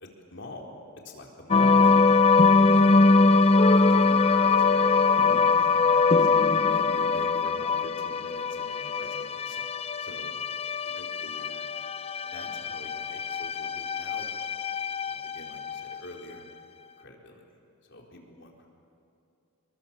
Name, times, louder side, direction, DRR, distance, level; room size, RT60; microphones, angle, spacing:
voice 1, 0.3-0.6 1.0-2.9 3.7-10.4 10.8-11.6 12.2-14.4 15.0-16.4 17.0-17.6 17.8-18.7, left 1 dB, 60° left, 0 dB, 4.2 m, -45 dB
sound 1, 1.5-16.0, left 4 dB, 30° left, 0.5 m, -22 dB
28.0 x 22.0 x 7.4 m, 2.6 s
head